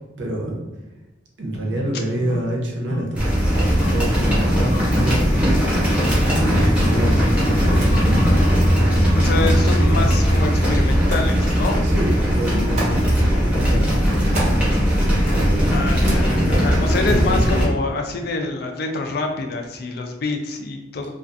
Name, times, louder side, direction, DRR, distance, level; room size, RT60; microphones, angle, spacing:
voice 1, 0.2-0.7 1.4-5.5 6.3-8.3 8.5-8.9 9.5-9.9 11.8-12.9 13.3-15.7 17.1-17.4, right 1 dB, 75° right, -1 dB, 0.6 m, -27 dB
sound 1, 1.5-11.0 11.3-11.4, left 1 dB, 80° left, 0.7 m, -33 dB
sound 2, 3.1-17.6, equal, 5° right, 0.7 m, -18 dB
sound 3, 5.9-17.4, right 2 dB, 40° right, 0.6 m, -38 dB
voice 2, 9.2-11.9 15.7-21.1, left 3 dB, 55° left, 4 dB, 0.3 m, -26 dB
2.4 x 2.3 x 2.4 m, 1.0 s
head